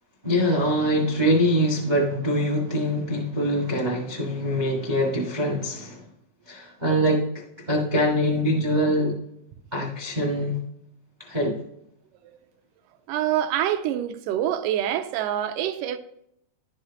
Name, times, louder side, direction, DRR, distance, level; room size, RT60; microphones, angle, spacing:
voice 1, 0.2-6.0 6.5-9.1 9.7-10.5 11.3-11.6, equal, 45° right, 0.5 m, -24 dB
voice 2, 13.1-16.0, right 11 dB, 85° right, 2.2 m, -26 dB
11.5 x 6.3 x 2.8 m
omnidirectional pair, 3.8 m